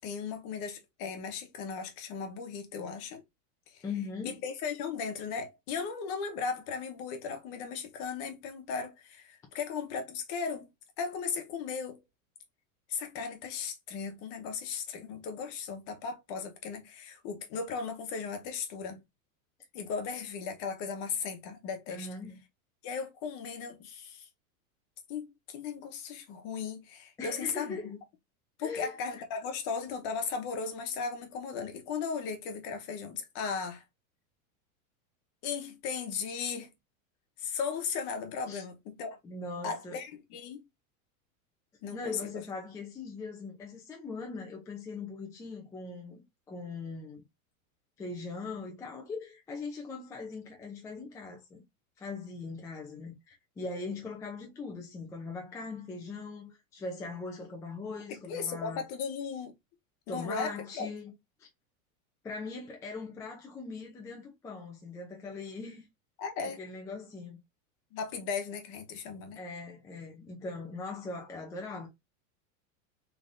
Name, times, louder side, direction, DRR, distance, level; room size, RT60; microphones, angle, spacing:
voice 1, 0.0-3.2 3.7-3.8 4.2-10.7 11.0-12.0 12.9-19.0 19.7-22.1 22.8-24.3 25.1-28.0 28.6-33.8 35.4-36.7 37.4-39.2 39.6-40.6 41.8-42.3 58.1-59.5 60.1-60.9 66.2-66.6 67.9-69.4, left 5 dB, 45° left, 1.1 m, -36 dB
voice 2, 3.8-4.3 21.9-22.4 27.2-27.9 28.6-28.9 38.5-38.6 39.2-40.0 41.9-47.2 48.0-51.6 52.0-58.8 60.1-61.1 61.4-61.5 62.2-65.9 66.4-67.4 69.4-71.9, left 4 dB, 10° left, 0.4 m, -40 dB
3.7 x 3.3 x 2.5 m
supercardioid pair, 155°, 42 cm